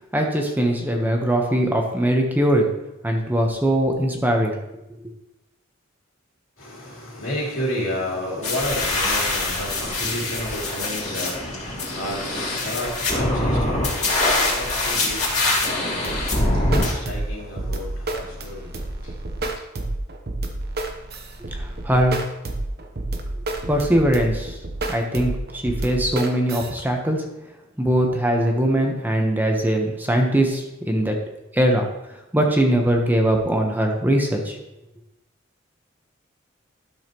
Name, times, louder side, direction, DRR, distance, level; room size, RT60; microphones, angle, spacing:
voice 1, 0.1-2.7 3.0-4.6 4.9-5.0 21.4-22.2 23.7-24.6 24.9-27.3 27.8-31.2 31.5-31.9 32.3-34.6, right 1 dB, 10° right, 1 dB, 1.0 m, -21 dB
voice 2, 6.6-16.2 17.0-18.7, left 1 dB, 85° left, -4 dB, 2.8 m, -31 dB
sound 1, 8.4-16.9, left 2 dB, 35° left, 2.6 m, -24 dB
sound 2, 16.0-26.7, right 2 dB, 50° right, 1.0 m, -30 dB
12.0 x 6.4 x 3.0 m, 0.92 s
head